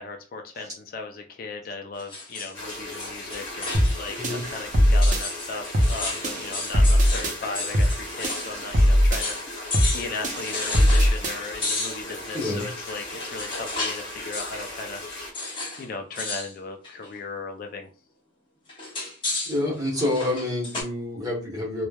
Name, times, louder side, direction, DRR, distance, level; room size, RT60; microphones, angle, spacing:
voice 1, 0.0-15.1 15.8-17.9, left 4 dB, 45° left, 4 dB, 0.3 m, -37 dB
sound 1, 2.0-4.2 4.5-4.6 5.0-8.5 8.8-8.9 9.2-9.5 9.7-11.2 11.6-14.1 14.3-14.7 15.3-15.9 16.1-16.5 16.8-17.2 18.7-20.8, left 3 dB, 25° left, 0.7 m, -33 dB
sound 2, 2.5-15.3, left 1 dB, 60° left, 0.9 m, -37 dB
sound 3, 3.7-4.0 4.2-5.2 5.7-6.0 6.2-7.4 7.7-8.0 8.2-9.2 9.7-10.0 10.2-11.4, equal, 40° right, 0.5 m, -20 dB
voice 2, 12.3-12.7 19.4-21.9, left 1 dB, 20° right, -3 dB, 0.9 m, -27 dB
3.1 x 2.1 x 2.2 m, 0.36 s
head